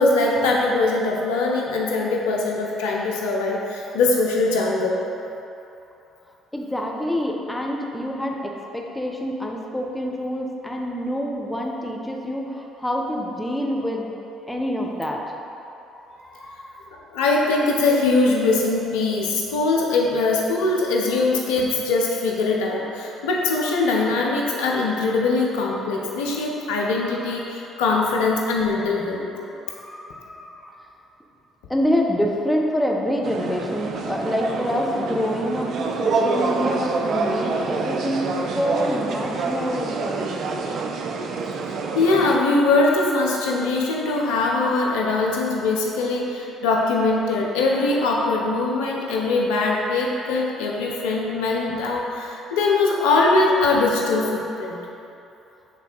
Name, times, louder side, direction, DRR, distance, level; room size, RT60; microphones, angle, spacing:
voice 1, 0.0-5.0 17.1-29.3 41.9-54.8, left 3 dB, 80° left, -2 dB, 0.9 m, -22 dB
voice 2, 6.5-14.1 14.5-15.2 15.9-16.8 26.9-27.4 29.7-30.7 31.7-40.4, equal, 10° left, -1 dB, 1.1 m, -27 dB
sound 1, 33.2-42.4, right 3 dB, 60° right, 0.5 m, -26 dB
8.6 x 3.4 x 4.6 m, 2.9 s
hypercardioid pair, 55°, 0 cm